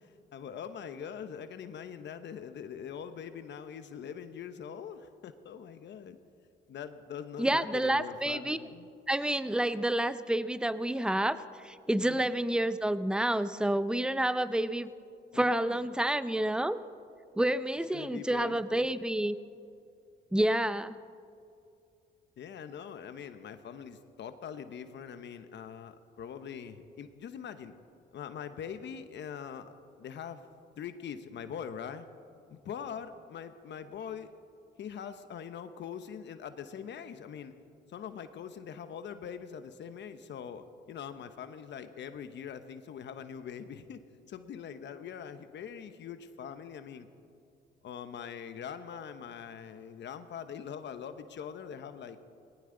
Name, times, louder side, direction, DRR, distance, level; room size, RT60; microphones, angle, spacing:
voice 1, 0.0-6.2 6.7-8.9 12.0-12.4 15.3-15.9 17.9-18.9 22.4-27.7 28.1-29.7 30.0-30.4 30.8-32.1 32.5-34.3 34.8-37.5 37.9-44.0 44.3-47.1 47.8-52.2, left 7 dB, 65° left, 10 dB, 0.9 m, -43 dB
voice 2, 7.4-8.6 9.1-14.9 15.3-16.8 17.4-19.4 20.3-20.9, right 1 dB, 5° right, 14 dB, 0.5 m, -29 dB
19.5 x 18.0 x 3.9 m, 2.5 s
cardioid pair, 90°, 20 cm